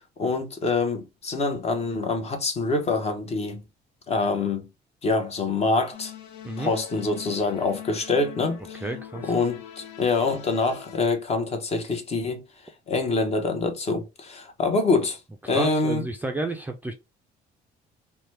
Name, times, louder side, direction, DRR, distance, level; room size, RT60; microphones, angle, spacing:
voice 1, 0.2-3.6 4.1-4.7 5.0-6.1 6.6-8.8 9.3-12.4 12.9-15.2 15.5-16.0, left 3 dB, 40° left, 0.9 m, -25 dB
sound 1, 5.9-11.0, left 11 dB, 80° left, 0.6 m, -42 dB
voice 2, 8.7-9.4 15.4-16.9, right 2 dB, 10° right, 0.4 m, -31 dB
2.9 x 2.2 x 3.2 m
cardioid pair, 110°, 17 cm